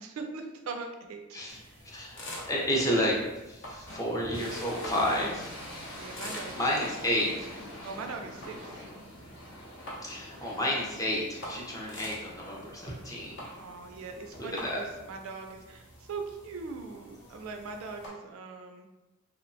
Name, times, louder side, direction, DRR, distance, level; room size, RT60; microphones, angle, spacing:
voice 1, 0.0-1.9 5.9-6.6 7.8-8.8 13.5-18.9, right 4 dB, 75° right, 4 dB, 0.3 m, -41 dB
sound 1, 1.5-18.1, equal, 60° left, 0.6 m, -47 dB
voice 2, 1.8-5.5 6.5-7.5 10.0-13.4 14.4-14.8, equal, 15° left, -3 dB, 0.5 m, -31 dB
sound 2, 3.9-15.1, left 1 dB, 80° left, 1.1 m, -45 dB
2.8 x 2.1 x 2.6 m, 1.1 s
head